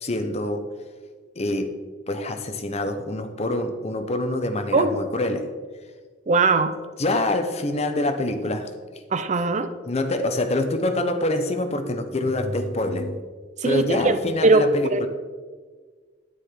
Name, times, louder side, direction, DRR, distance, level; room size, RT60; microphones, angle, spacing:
voice 1, 0.0-0.6 1.4-1.8 2.1-5.5 7.0-8.7 9.9-13.2 13.6-15.1, left 1 dB, 35° left, 7 dB, 0.8 m, -25 dB
voice 2, 6.3-6.7 9.1-9.7 13.6-14.2 14.4-15.1, right 3 dB, 40° right, 11 dB, 0.5 m, -20 dB
9.7 x 9.6 x 3.8 m, 1.5 s
head